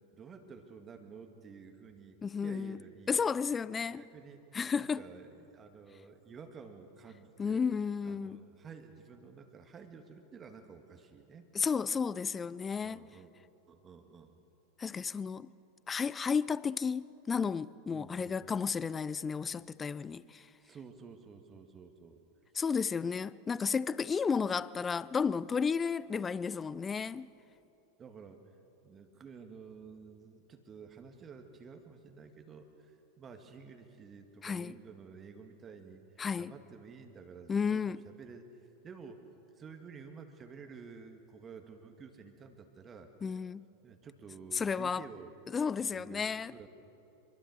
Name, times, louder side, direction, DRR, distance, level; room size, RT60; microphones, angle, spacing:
voice 1, 0.1-3.2 3.5-3.6 3.9-4.5 4.7-7.6 8.0-11.5 12.8-13.3 13.7-14.4 17.9-18.6 20.1-20.2 20.6-22.2 28.0-28.5 28.8-39.3 39.6-43.1 43.8-45.3 45.8-46.7, right 5 dB, 25° right, 2.0 m, -51 dB
voice 2, 2.2-2.8 3.1-4.0 4.5-5.0 7.4-8.4 11.5-13.0 14.8-15.5 15.9-20.5 22.5-27.3 34.4-34.7 36.2-36.5 37.5-38.0 43.2-43.6 44.5-45.1 45.5-46.5, left 6 dB, 20° left, 0.5 m, -32 dB
25.5 x 23.5 x 6.5 m
figure-of-eight pair, 85°, 0 cm